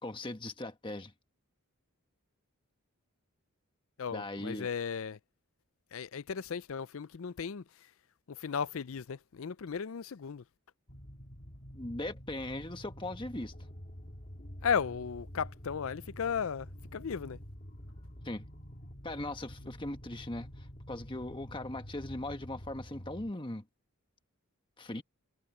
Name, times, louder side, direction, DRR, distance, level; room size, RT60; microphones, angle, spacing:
voice 1, 0.0-1.1 4.1-4.7 11.7-13.5 18.2-18.4 19.0-23.6 24.8-25.0, left 1 dB, 20° left, 1.4 m, -39 dB
voice 2, 4.0-5.2 5.9-7.6 8.3-10.4 14.6-17.4, left 6 dB, 65° left, 0.5 m, -35 dB
sound 1, 10.9-23.3, equal, 40° left, 1.8 m, -48 dB
head